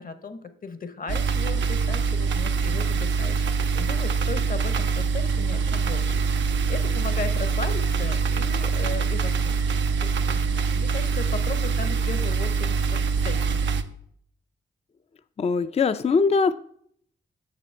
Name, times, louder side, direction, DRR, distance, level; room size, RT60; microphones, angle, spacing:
voice 1, 0.0-3.5 3.7-6.1 6.7-9.5 10.0-13.6, left 4 dB, 50° left, 10 dB, 0.9 m, -36 dB
sound 1, 1.1-13.8, right 5 dB, 85° right, 0.5 m, -24 dB
voice 2, 15.4-16.6, left 5 dB, 35° left, 12 dB, 0.4 m, -21 dB
6.7 x 6.1 x 4.4 m, 0.64 s
cardioid pair, 50°, 19 cm